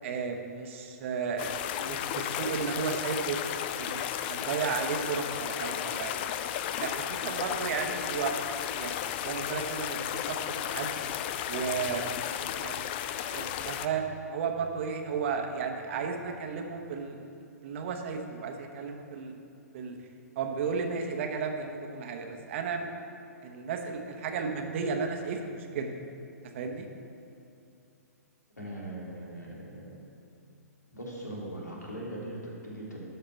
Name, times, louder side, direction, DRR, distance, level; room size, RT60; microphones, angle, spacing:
voice 1, 0.0-3.4 3.8-6.4 6.8-8.4 8.7-11.0 11.5-12.1 12.6-17.3 17.6-19.4 19.7-20.0 20.3-22.9 23.4-26.0 26.5-26.9, right 5 dB, 50° right, 4 dB, 1.1 m, -34 dB
sound 1, 1.4-13.9, left 10 dB, 40° left, 0.4 m, -34 dB
voice 2, 28.6-30.0 30.9-33.0, right 1 dB, 90° left, -3 dB, 2.4 m, -40 dB
12.5 x 5.7 x 4.5 m, 2.6 s
figure-of-eight pair, 120°, 9 cm